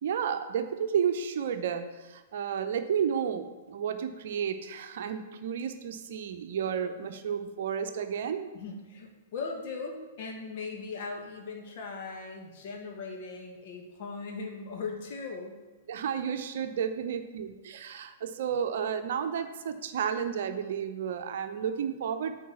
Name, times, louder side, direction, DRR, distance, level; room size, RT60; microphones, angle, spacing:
voice 1, 0.0-8.5 15.9-22.4, right 7 dB, 55° right, 8 dB, 0.7 m, -32 dB
voice 2, 8.5-15.6, left 4 dB, 50° left, 2 dB, 1.8 m, -39 dB
8.5 x 4.6 x 7.0 m, 1.2 s
figure-of-eight pair, 105°, 0 cm